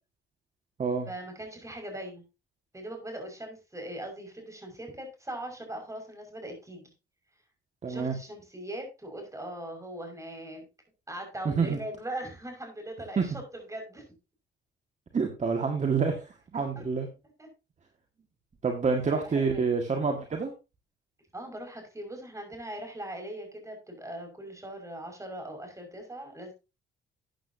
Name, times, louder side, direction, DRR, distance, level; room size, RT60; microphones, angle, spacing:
voice 1, 1.1-2.2 2.7-6.9 7.9-10.7 11.1-14.0 16.5-16.8 17.4-17.5 19.0-19.7 21.3-26.5, right 1 dB, 15° right, 3 dB, 5.7 m, -40 dB
voice 2, 7.8-8.1 11.5-11.8 13.2-13.3 15.1-17.1 18.6-20.5, right 5 dB, 35° right, 4 dB, 1.9 m, -27 dB
13.5 x 9.1 x 2.8 m, 0.28 s
cardioid pair, 90°, 20 cm